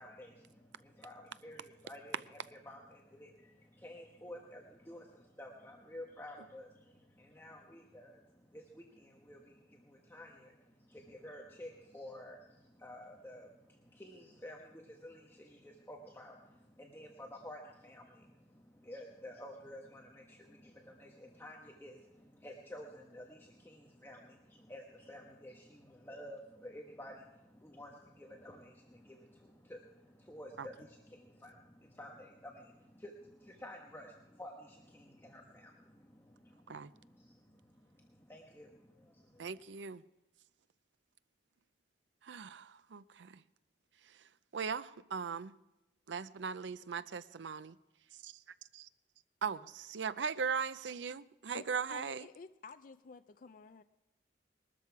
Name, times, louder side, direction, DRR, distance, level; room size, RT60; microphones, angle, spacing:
voice 1, 0.0-39.6, left 1 dB, 15° left, 1.2 m, -52 dB
voice 2, 39.4-40.0 42.2-43.4 44.5-45.5 46.1-47.8 49.4-52.3, right 6 dB, 80° right, 0.5 m, -39 dB
voice 3, 51.5-53.8, left 4 dB, 45° left, 0.4 m, -51 dB
20.5 x 13.0 x 4.7 m
head